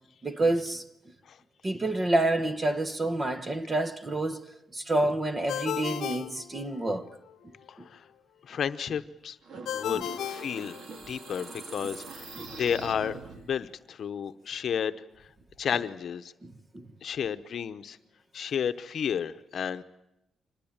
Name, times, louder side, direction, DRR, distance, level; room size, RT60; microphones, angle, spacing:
voice 1, 0.2-0.8 1.6-4.5 4.7-7.1 9.5-9.6 9.9-10.0 12.4-12.5 16.4-16.9, right 2 dB, 20° right, 1.1 m, -28 dB
Ringtone, 5.5-7.2 9.7-11.3, left 11 dB, 85° left, 0.8 m, -35 dB
voice 2, 7.7-8.1 8.4-9.4 9.7-10.8 11.0-15.3 15.6-16.3 17.0-18.0 18.3-19.8, left 8 dB, 55° left, 0.9 m, -32 dB
sound 1, 9.4-13.7, right 4 dB, 55° right, 2.1 m, -43 dB
25.0 x 20.0 x 8.8 m
wide cardioid pair, 150°, 0 cm